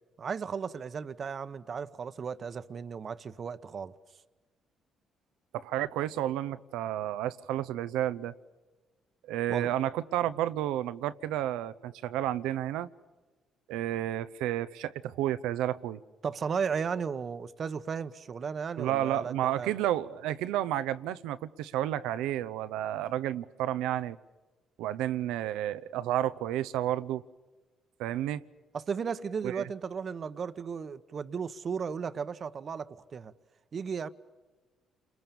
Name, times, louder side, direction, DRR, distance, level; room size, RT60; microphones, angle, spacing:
voice 1, 0.2-3.9 9.5-9.7 16.2-19.8 28.7-33.3 33.7-34.1, right 6 dB, 50° right, 1.0 m, -35 dB
voice 2, 5.5-8.3 9.3-12.9 13.7-16.0 18.8-24.2 24.8-27.2 28.0-28.4 29.4-29.6, right 12 dB, 85° right, 0.7 m, -31 dB
29.5 x 21.5 x 7.1 m
supercardioid pair, 70°, 0 cm